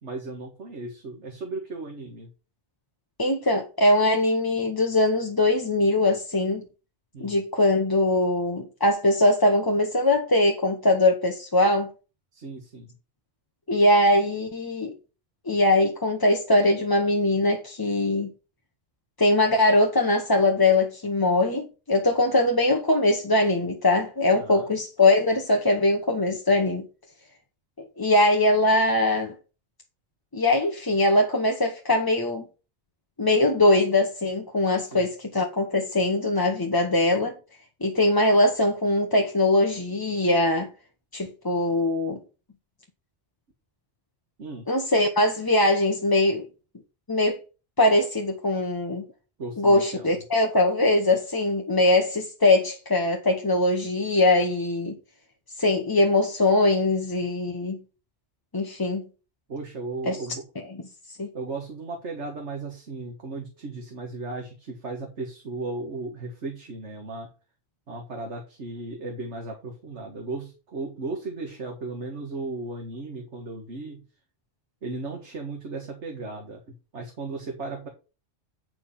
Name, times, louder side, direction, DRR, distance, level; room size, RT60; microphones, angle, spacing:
voice 1, 0.0-2.3 7.1-7.4 12.3-12.9 24.3-24.7 34.8-35.0 44.4-44.7 49.4-50.2 59.5-60.4 61.3-67.3 67.9-74.0 74.8-76.6 76.9-77.9, right 3 dB, 75° right, 1.8 m, -36 dB
voice 2, 3.2-6.6 7.2-11.9 13.7-14.9 15.5-18.3 19.2-26.8 27.8-29.3 30.3-32.4 33.2-37.3 37.8-40.7 41.1-42.2 44.7-46.5 47.1-47.4 47.8-49.0 49.6-55.0 55.6-57.8 58.5-59.0 60.1-60.2 60.6-60.7 61.2-61.3, left 2 dB, 20° left, 0.9 m, -21 dB
9.4 x 4.7 x 5.6 m
omnidirectional pair, 1.2 m